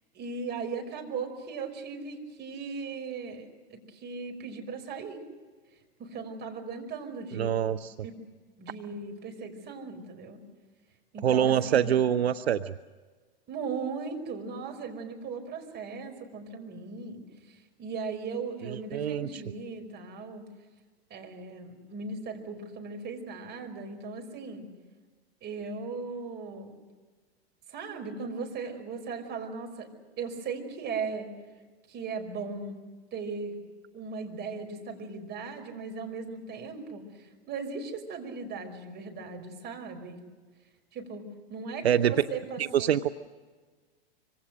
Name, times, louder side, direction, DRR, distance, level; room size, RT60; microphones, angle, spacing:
voice 1, 0.1-5.2 6.0-7.5 8.0-8.1 8.6-10.4 11.1-11.9 13.5-20.4 21.1-24.7 25.4-26.7 27.7-29.9 30.2-31.3 31.9-32.8 33.1-33.6 33.9-40.2 40.9-42.9, right 4 dB, 35° right, 4 dB, 5.4 m, -38 dB
voice 2, 7.3-7.9 11.2-12.7 18.6-19.4 41.8-42.1 42.6-43.1, right 9 dB, 80° right, 12 dB, 0.8 m, -25 dB
26.0 x 25.5 x 6.5 m, 1.4 s
hypercardioid pair, 105°, 31 cm